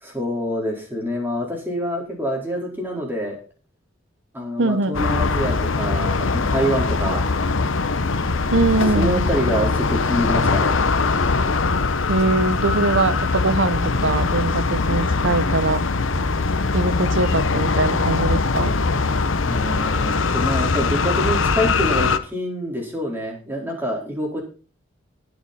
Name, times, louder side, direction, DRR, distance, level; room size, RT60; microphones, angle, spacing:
voice 1, 0.0-3.4 4.3-7.2 8.5-8.6 8.9-10.8 19.4-24.4, equal, 10° right, -1 dB, 4.3 m, -26 dB
voice 2, 4.6-5.0 8.5-9.3 12.1-15.8 16.7-18.7, right 2 dB, 60° right, 14 dB, 0.9 m, -22 dB
sound 1, 4.9-22.2, left 4 dB, 70° left, 0.9 m, -21 dB
20.5 x 6.8 x 4.3 m, 0.37 s
head